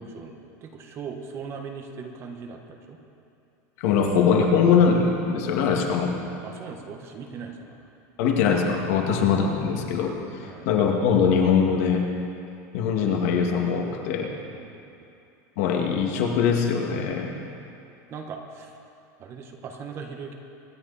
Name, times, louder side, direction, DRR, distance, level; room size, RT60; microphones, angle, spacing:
voice 1, 0.0-3.0 6.4-7.9 8.9-9.1 10.4-10.7 14.2-14.7 18.1-18.8 19.2-20.3, right 5 dB, 30° right, 4 dB, 1.3 m, -39 dB
voice 2, 3.8-6.1 8.2-12.0 12.7-14.3 15.6-17.3, left 6 dB, 60° left, 1 dB, 2.2 m, -22 dB
25.0 x 11.5 x 4.2 m, 2.7 s
supercardioid pair, 160°, 9 cm